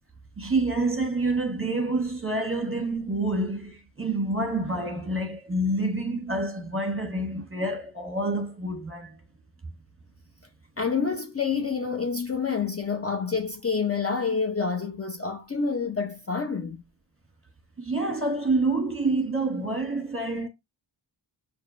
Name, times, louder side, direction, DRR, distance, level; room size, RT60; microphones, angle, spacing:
voice 1, 0.4-9.2 17.8-20.5, right 2 dB, 25° right, 1.4 m, -27 dB
voice 2, 10.8-16.8, left 5 dB, 30° left, 0.6 m, -28 dB
6.4 x 2.8 x 2.4 m
wide cardioid pair, 60°, 46 cm